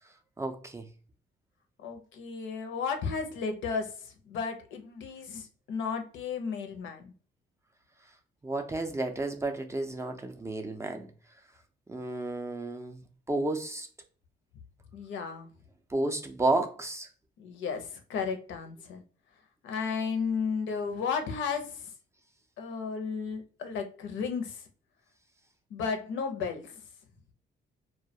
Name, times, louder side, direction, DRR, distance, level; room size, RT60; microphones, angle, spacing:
voice 1, 0.4-0.8 8.4-11.1 11.9-13.0 13.3-13.9 15.9-17.1, right 2 dB, 15° right, 0.3 m, -31 dB
voice 2, 1.8-7.1 14.9-15.5 17.4-19.0 19.6-21.9 22.6-24.6 25.7-26.8, left 5 dB, 75° left, 0.5 m, -34 dB
2.2 x 2.1 x 2.6 m
cardioid pair, 90°, 20 cm